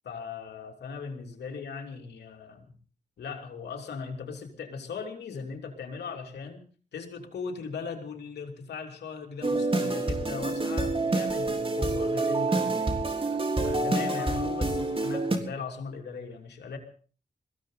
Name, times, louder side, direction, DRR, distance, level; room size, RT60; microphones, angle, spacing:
voice 1, 0.0-2.6 3.2-6.6 6.9-13.1 13.6-16.8, left 5 dB, 90° left, 3 dB, 3.0 m, -39 dB
sound 1, 9.4-15.4, right 2 dB, 35° right, 3.8 m, -27 dB
22.0 x 16.0 x 4.0 m, 0.41 s
cardioid pair, 45°, 17 cm